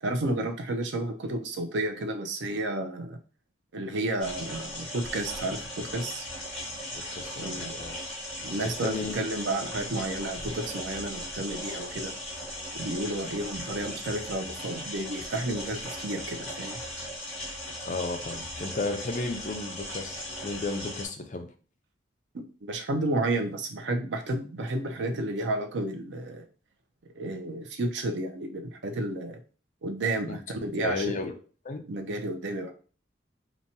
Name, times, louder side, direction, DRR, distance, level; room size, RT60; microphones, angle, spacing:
voice 1, 0.0-3.2 3.7-6.3 7.4-7.7 8.4-12.1 12.7-16.8 22.3-26.4 27.2-29.4 29.8-31.1 31.9-32.7, right 2 dB, 80° right, 4 dB, 0.5 m, -31 dB
sound 1, 4.2-21.1, left 1 dB, ahead, 1.3 m, -38 dB
voice 2, 7.1-8.0 8.8-9.1 17.8-20.1 20.4-21.5 30.3-30.4 30.8-31.3 31.6-31.8, left 3 dB, 45° left, 4 dB, 0.5 m, -33 dB
2.8 x 2.2 x 2.7 m, 0.39 s
head